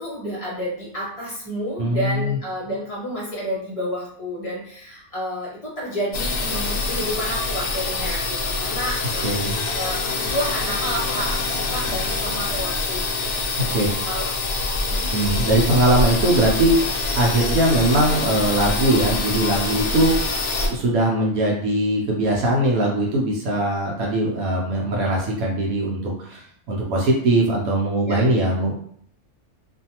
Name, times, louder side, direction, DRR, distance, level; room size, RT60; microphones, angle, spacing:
voice 1, 0.0-9.3 9.7-13.0 13.3-13.4 13.7-14.3 14.9-15.1 28.0-28.2, equal, 30° left, -6 dB, 0.8 m, -30 dB
voice 2, 1.8-2.4 9.2-9.6 13.5-14.1 15.1-28.8, right 1 dB, 70° right, -2 dB, 1.0 m, -21 dB
sound 1, 6.1-20.7, left 3 dB, 65° left, 0.7 m, -25 dB
2.5 x 2.4 x 2.8 m, 0.63 s
omnidirectional pair, 1.6 m